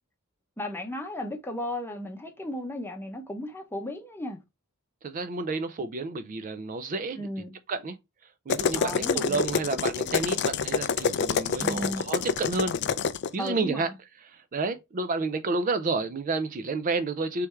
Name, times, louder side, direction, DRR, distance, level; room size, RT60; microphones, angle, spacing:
voice 1, 0.6-4.4 7.2-7.5 8.8-9.4 11.6-12.0 13.4-13.9, left 1 dB, 10° left, 0.8 m, -35 dB
voice 2, 5.0-7.3 7.7-8.0 8.5-12.8 13.3-13.9 14.2-17.5, right 3 dB, 40° right, 0.4 m, -30 dB
sound 1, 8.5-13.3, left 6 dB, 50° left, 0.4 m, -27 dB
3.5 x 3.2 x 4.3 m
head